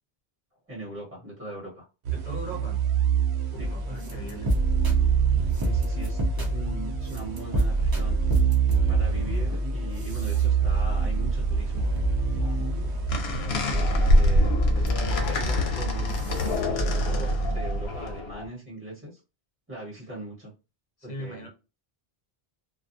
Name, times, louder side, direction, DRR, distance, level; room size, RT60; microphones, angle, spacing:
voice 1, 0.7-1.9 3.6-3.7 5.5-8.2 8.9-11.8 12.4-12.7 13.4-19.2 19.7-20.5 21.0-21.5, right 1 dB, 10° right, -5 dB, 1.2 m, -40 dB
sound 1, 2.0-13.9, right 9 dB, 85° right, 0.9 m, -27 dB
voice 2, 2.1-2.8 3.5-4.5 21.0-21.5, right 1 dB, 45° left, 3 dB, 0.8 m, -39 dB
sound 2, 3.6-17.9, right 1 dB, 30° right, 0.5 m, -28 dB
sound 3, 13.1-18.5, left 1 dB, 80° left, 0.9 m, -25 dB
2.3 x 2.3 x 2.6 m, 0.31 s
omnidirectional pair, 1.0 m